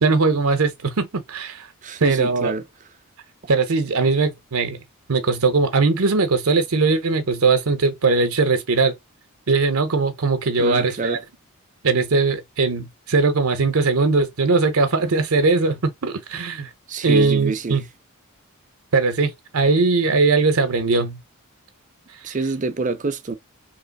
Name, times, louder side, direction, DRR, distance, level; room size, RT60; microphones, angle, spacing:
voice 1, 0.0-1.7 2.0-2.5 3.5-4.8 5.1-9.0 9.5-11.2 11.8-16.7 17.0-17.8 18.9-21.2 22.2-22.3, right 3 dB, 70° right, 0.7 m, -20 dB
voice 2, 1.8-2.6 10.6-11.2 16.9-17.8 22.2-23.3, right 3 dB, 35° right, 0.6 m, -26 dB
3.1 x 3.0 x 4.0 m
head